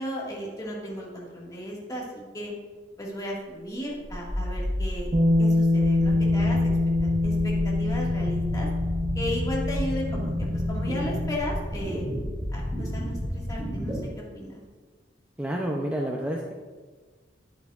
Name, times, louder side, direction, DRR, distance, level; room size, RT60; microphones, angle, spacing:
voice 1, 0.0-2.5 3.0-5.1 5.4-6.7 7.0-8.7 9.2-12.1 12.5-14.6, equal, 20° left, -4 dB, 1.8 m, -35 dB
sound 1, 4.0-14.0, equal, 30° right, 2.0 m, -31 dB
Bass guitar, 5.1-11.4, left 2 dB, 45° right, 0.9 m, -25 dB
voice 2, 15.4-16.5, right 1 dB, 10° right, -1 dB, 0.5 m, -29 dB
10.5 x 8.1 x 2.4 m, 1.4 s
head